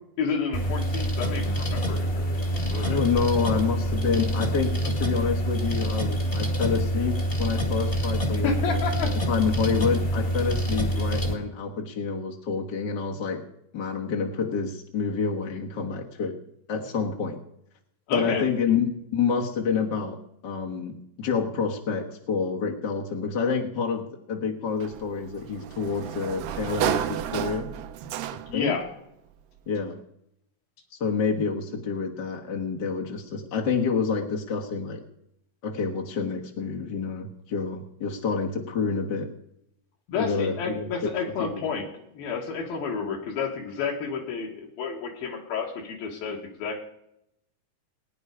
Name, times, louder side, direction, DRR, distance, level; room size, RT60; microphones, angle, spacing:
voice 1, 0.2-3.0 8.4-9.1 18.1-18.4 28.5-28.9 40.1-41.9 42.1-46.8, left 5 dB, 80° left, 0 dB, 3.8 m, -30 dB
sound 1, 0.5-11.3, right 1 dB, 30° left, 1.0 m, -26 dB
voice 2, 2.8-13.5 13.7-16.4 16.7-17.4 18.1-27.7 28.5-28.8 29.7-30.0 31.0-35.0 35.6-39.3 40.1-41.1 41.4-41.5, left 5 dB, 60° left, 1 dB, 1.1 m, -28 dB
Sliding door, 24.8-28.7, right 11 dB, 75° right, 2.3 m, -31 dB
20.5 x 9.9 x 4.9 m, 0.79 s
omnidirectional pair, 4.2 m